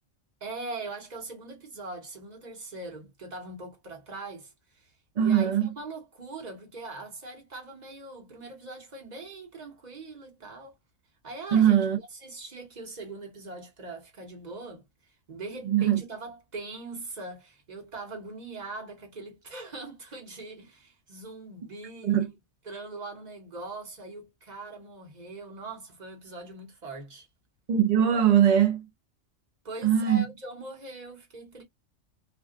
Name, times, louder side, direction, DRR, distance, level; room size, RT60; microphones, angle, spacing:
voice 1, 0.4-4.9 5.2-10.7 11.2-11.8 12.2-14.8 15.3-22.3 22.6-27.3 29.6-31.6, right 3 dB, 40° right, 1.0 m, -41 dB
voice 2, 5.2-5.7 11.5-12.0 15.6-16.0 22.0-22.3 27.7-28.8 29.8-30.2, right 9 dB, 55° right, 0.4 m, -21 dB
2.5 x 2.3 x 2.3 m
omnidirectional pair, 1.3 m